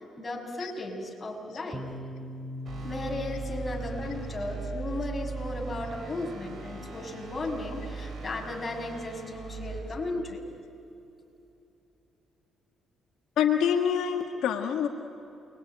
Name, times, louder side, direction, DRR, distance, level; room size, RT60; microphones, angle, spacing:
voice 1, 0.2-1.8 2.8-10.4, left 2 dB, 25° left, 1 dB, 6.1 m, -35 dB
sound 1, 1.7-9.4, left 1 dB, 5° left, 5.0 m, -44 dB
sound 2, 2.7-9.8, right 4 dB, 50° right, 7.1 m, -39 dB
voice 2, 13.4-14.9, left 8 dB, 85° left, 3 dB, 1.7 m, -26 dB
29.0 x 22.5 x 9.0 m, 2.8 s
cardioid pair, 90°, 0 cm